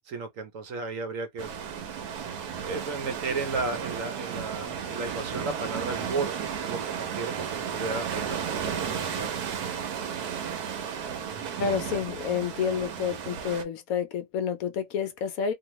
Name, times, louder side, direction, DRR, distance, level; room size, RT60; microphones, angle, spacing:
voice 1, 0.1-1.5 2.6-9.3, right 3 dB, 65° right, 0.9 m, -34 dB
sound 1, 1.4-13.6, right 7 dB, 80° right, 1.2 m, -33 dB
voice 2, 11.6-15.5, left 7 dB, 70° left, 0.9 m, -29 dB
2.8 x 2.4 x 3.0 m
omnidirectional pair, 1.7 m